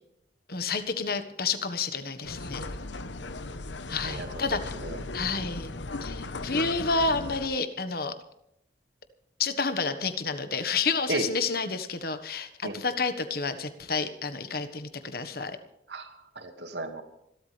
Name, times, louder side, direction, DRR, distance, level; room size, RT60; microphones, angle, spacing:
voice 1, 0.5-2.6 3.9-4.7 5.1-5.7 6.0-8.1 9.4-15.6, left 4 dB, 55° left, 10 dB, 1.5 m, -30 dB
sound 1, 2.2-7.5, left 2 dB, 90° left, 1.1 m, -37 dB
voice 2, 4.0-4.4 4.8-5.0 11.1-11.3 12.6-12.8 15.9-17.0, right 2 dB, 75° right, 6 dB, 2.1 m, -34 dB
26.0 x 13.0 x 3.4 m, 0.80 s
head